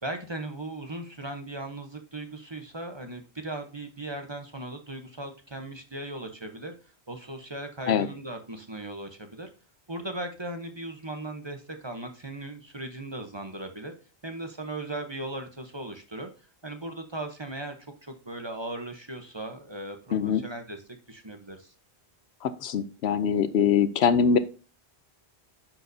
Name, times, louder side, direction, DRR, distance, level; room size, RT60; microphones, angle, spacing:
voice 1, 0.0-6.7 7.1-9.5 9.9-13.9 14.2-16.3 16.6-17.8 18.0-20.8 21.1-21.7, right 1 dB, 25° right, 5 dB, 1.0 m, -38 dB
voice 2, 20.1-20.4 22.4-24.4, left 7 dB, 80° left, 13 dB, 0.9 m, -23 dB
9.8 x 6.7 x 2.7 m, 0.35 s
omnidirectional pair, 1.1 m